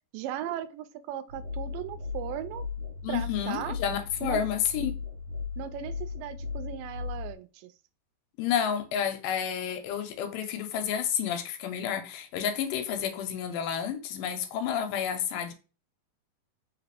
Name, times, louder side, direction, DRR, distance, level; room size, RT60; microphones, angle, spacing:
voice 1, 0.1-2.6 3.1-3.8 4.2-4.4 5.6-7.7, right 12 dB, 85° right, 2.2 m, -37 dB
sound 1, 1.3-7.3, left 5 dB, 65° right, 1.7 m, -36 dB
voice 2, 3.0-4.9 8.4-15.5, left 8 dB, 85° left, 2.3 m, -30 dB
5.2 x 2.4 x 3.3 m
omnidirectional pair, 3.9 m